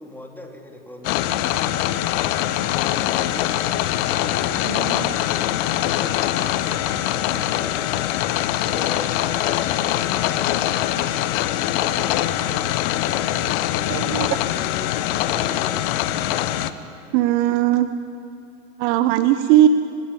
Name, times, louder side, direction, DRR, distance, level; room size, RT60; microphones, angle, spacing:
voice 1, 0.0-1.7 4.0-5.0 6.3-6.7 7.1-8.2 8.6-10.7 11.8-16.1, left 1 dB, 5° left, 2 dB, 3.4 m, -40 dB
sound 1, 1.0-16.7, left 13 dB, 50° left, 1.2 m, -23 dB
voice 2, 4.6-5.1 13.9-14.3 17.1-17.9 18.8-19.7, right 13 dB, 45° right, 11 dB, 1.0 m, -18 dB
23.5 x 18.0 x 9.9 m, 2.6 s
hypercardioid pair, 105°, 39 cm